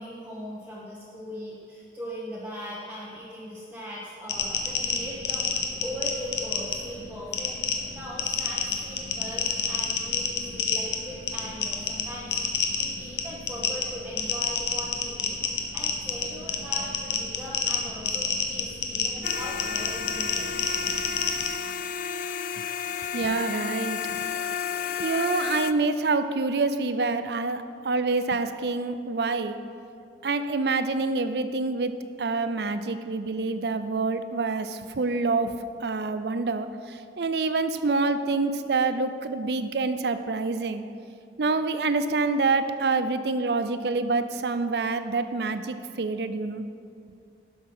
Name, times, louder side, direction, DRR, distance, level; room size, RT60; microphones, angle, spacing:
voice 1, 0.0-20.8, equal, 10° right, -7 dB, 1.2 m, -39 dB
sound 1, 4.3-21.5, left 5 dB, 75° left, 1.1 m, -29 dB
sound 2, 19.2-25.7, left 7 dB, 50° left, 0.3 m, -32 dB
voice 2, 23.1-24.3 25.0-29.6 30.2-31.9 32.2-35.5 35.8-40.8 41.4-46.6, right 3 dB, 65° right, 11 dB, 0.5 m, -27 dB
12.0 x 6.3 x 5.5 m, 2.4 s
head